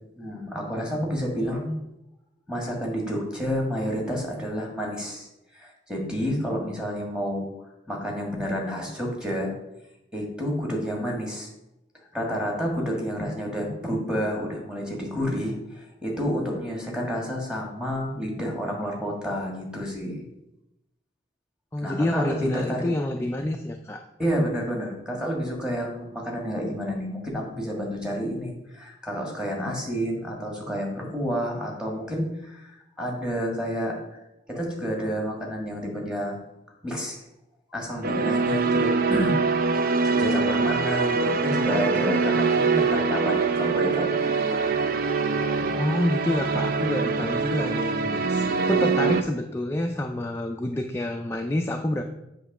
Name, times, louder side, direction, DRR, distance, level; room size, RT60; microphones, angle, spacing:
voice 1, 0.2-1.7 2.5-5.3 5.5-7.5 7.9-9.5 10.1-11.5 12.1-20.2 21.8-22.9 24.2-34.2 34.5-36.4 36.8-37.2 37.7-39.4 39.7-44.1 44.5-44.6 45.6-45.7, equal, 5° right, -2 dB, 1.5 m, -29 dB
voice 2, 21.7-24.0 45.7-52.0, left 1 dB, 15° left, 3 dB, 0.3 m, -28 dB
sound 1, 38.0-49.2, right 4 dB, 50° right, 0.4 m, -24 dB
7.8 x 3.0 x 5.9 m, 0.89 s
head